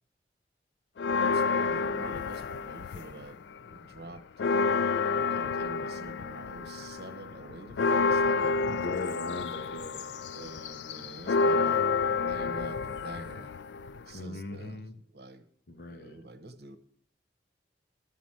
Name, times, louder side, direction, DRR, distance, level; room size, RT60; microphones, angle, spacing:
sound 1, 1.0-3.4 3.7-14.2, left 4 dB, 80° left, 0.4 m, -29 dB
voice 1, 1.2-4.5 5.1-8.6 10.3-13.5 14.1-15.5 15.7-16.8, right 2 dB, 60° right, 7 dB, 1.1 m, -47 dB
voice 2, 8.7-10.1 14.1-14.9 15.7-16.2, left 2 dB, 60° left, 9 dB, 0.8 m, -39 dB
13.5 x 6.1 x 7.4 m, 0.63 s
head